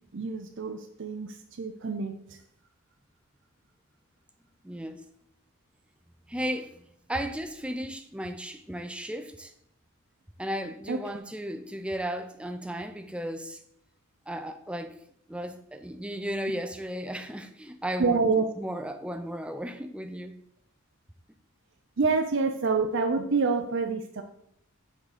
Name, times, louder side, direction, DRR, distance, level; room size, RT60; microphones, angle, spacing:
voice 1, 0.1-2.1 10.9-11.0 18.0-18.4 22.0-24.2, right 4 dB, 55° right, 6 dB, 0.5 m, -27 dB
voice 2, 4.6-5.0 6.3-9.5 10.4-13.6 14.3-15.0 15.3-18.2 18.6-20.4, equal, 5° right, 8 dB, 0.4 m, -35 dB
7.2 x 3.9 x 5.0 m, 0.72 s
head